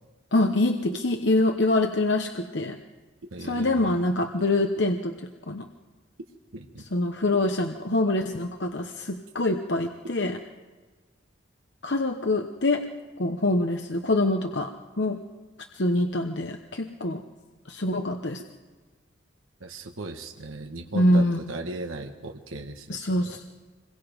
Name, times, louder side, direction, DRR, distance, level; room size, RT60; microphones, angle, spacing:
voice 1, 0.3-2.8 3.4-5.1 5.5-5.7 6.8-10.4 11.8-12.8 13.2-15.2 15.7-17.2 17.7-18.4 20.9-21.4 22.9-23.4, left 2 dB, 60° left, 5 dB, 1.0 m, -25 dB
voice 2, 3.3-3.9 6.5-6.9 19.6-23.4, right 2 dB, 90° right, 3 dB, 1.5 m, -37 dB
26.5 x 22.5 x 5.2 m, 1.4 s
head